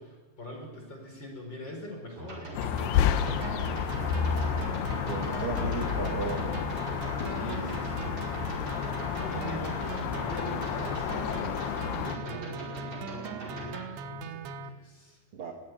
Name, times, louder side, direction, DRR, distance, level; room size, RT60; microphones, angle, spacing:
voice 1, 0.0-3.4 7.3-8.2 8.6-15.2, equal, 25° left, 3 dB, 5.0 m, -43 dB
sound 1, 2.2-13.8, right 2 dB, 20° right, 5.5 m, -41 dB
sound 2, 2.5-12.2, left 9 dB, 75° left, 2.7 m, -31 dB
sound 3, 3.2-14.7, right 4 dB, 85° right, 3.4 m, -40 dB
voice 2, 5.0-6.7 15.3-15.5, right 5 dB, 55° right, 3 dB, 1.5 m, -35 dB
22.5 x 16.0 x 9.6 m, 1.2 s
omnidirectional pair, 5.2 m